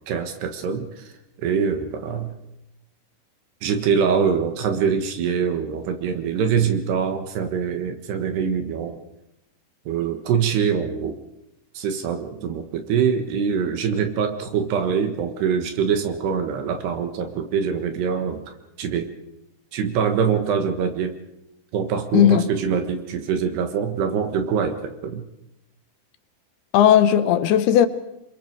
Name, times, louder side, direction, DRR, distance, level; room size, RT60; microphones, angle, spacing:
voice 1, 0.1-1.1 1.4-2.3 3.6-9.0 9.9-11.2 11.8-18.4 18.8-19.1 19.7-21.2 21.7-25.2, right 7 dB, 75° right, 3.5 m, -24 dB
voice 2, 22.1-22.5 26.7-27.9, left 10 dB, 75° left, 2.7 m, -16 dB
28.0 x 22.5 x 4.7 m
omnidirectional pair, 4.9 m